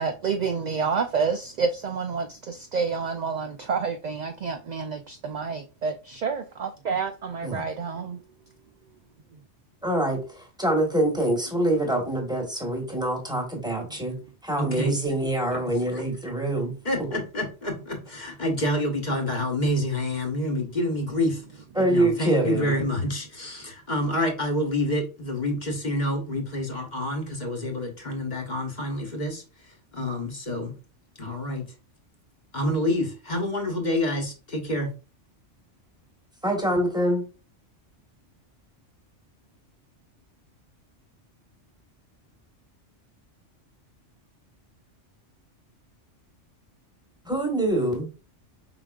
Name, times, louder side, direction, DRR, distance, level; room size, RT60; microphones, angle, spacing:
voice 1, 0.0-8.2, right 5 dB, 65° right, 0.4 m, -29 dB
voice 2, 9.8-14.2 14.4-16.7 21.7-22.7 36.4-37.2 47.3-48.1, right 1 dB, 5° right, 1.2 m, -25 dB
voice 3, 14.6-15.0 15.5-15.6 15.9-16.0 16.8-30.8 31.2-31.7 32.5-34.9, left 1 dB, 40° left, 1.1 m, -28 dB
5.0 x 3.8 x 2.4 m
omnidirectional pair, 1.2 m